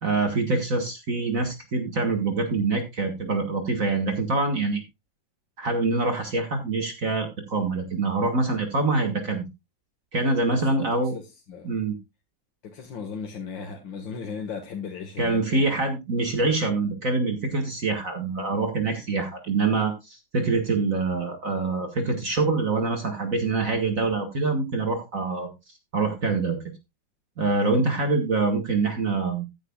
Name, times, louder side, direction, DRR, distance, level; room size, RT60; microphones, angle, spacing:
voice 1, 0.0-4.8 5.6-9.4 10.1-11.2 11.6-12.0 15.2-25.5 25.9-26.6 27.4-29.5, right 3 dB, 45° right, 1.9 m, -25 dB
voice 2, 10.4-11.8 12.6-15.8 19.1-19.2 27.9-28.0, left 6 dB, 80° left, 2.2 m, -37 dB
15.0 x 9.1 x 2.3 m
omnidirectional pair, 2.0 m